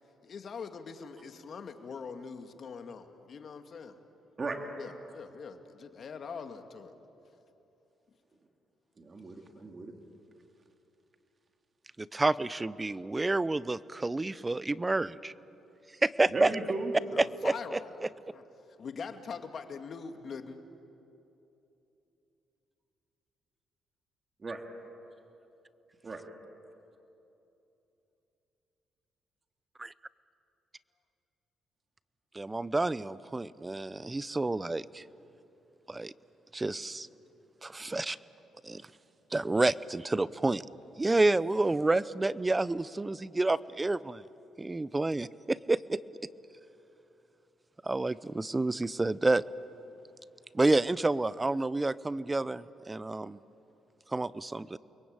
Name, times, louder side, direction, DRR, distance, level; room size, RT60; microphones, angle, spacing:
voice 1, 0.2-4.0 4.8-6.9 17.1-18.4 18.8-20.6, left 5 dB, 50° left, 6 dB, 2.2 m, -43 dB
voice 2, 9.0-9.9 16.3-16.9 24.4-24.6 26.0-26.2 37.8-38.0 38.7-38.9, right 3 dB, 35° right, 3 dB, 2.7 m, -37 dB
voice 3, 12.0-15.3 16.0-16.5 17.2-17.8 29.8-29.9 32.3-35.0 35.9-36.1 36.5-37.1 37.6-38.2 38.6-38.8 39.3-40.6 41.0-44.2 44.6-46.0 47.8-49.4 50.5-53.4 54.1-54.8, right 2 dB, 20° right, 18 dB, 0.7 m, -29 dB
29.5 x 22.5 x 9.0 m, 2.9 s
cardioid pair, 90°, 0 cm